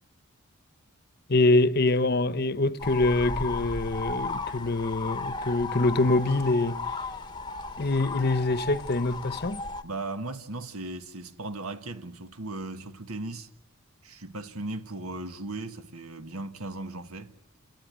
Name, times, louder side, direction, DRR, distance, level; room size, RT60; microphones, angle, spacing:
voice 1, 1.3-6.8 7.8-9.6, left 2 dB, 45° left, 0.9 m, -25 dB
sound 1, 2.8-9.8, left 3 dB, 20° left, 0.9 m, -35 dB
voice 2, 9.8-13.5 14.0-17.4, right 2 dB, 80° right, 1.6 m, -37 dB
27.5 x 18.5 x 9.2 m
head